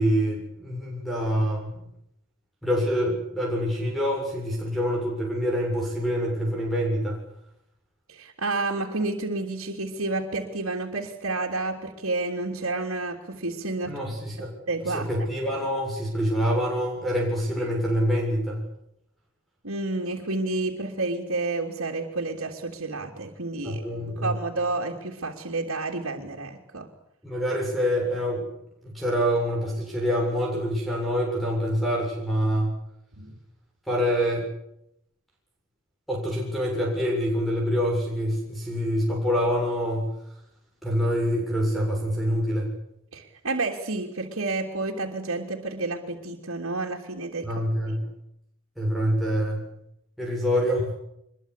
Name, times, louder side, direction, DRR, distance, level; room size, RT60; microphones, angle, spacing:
voice 1, 0.0-1.8 2.6-7.2 13.8-14.5 14.8-18.6 23.6-24.4 27.2-28.4 28.8-32.8 33.9-34.5 36.1-40.1 40.8-42.7 47.4-48.1 48.8-49.7 50.2-51.0, equal, ahead, -4 dB, 7.3 m, -26 dB
voice 2, 8.1-14.0 14.7-15.1 19.6-23.8 24.1-26.9 33.1-33.4 43.1-47.6, right 3 dB, 85° right, -1 dB, 3.3 m, -30 dB
25.0 x 22.5 x 8.5 m, 0.79 s
head